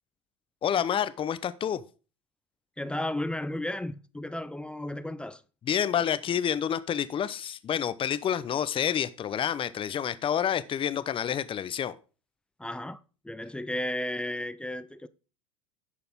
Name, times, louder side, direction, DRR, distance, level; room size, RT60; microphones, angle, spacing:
voice 1, 0.6-1.8 5.7-12.0, left 9 dB, 30° left, 0.9 m, -28 dB
voice 2, 2.8-5.4 12.6-13.0 13.2-15.1, left 1 dB, 5° left, 0.6 m, -33 dB
11.0 x 6.7 x 3.7 m
hypercardioid pair, 85°, 17 cm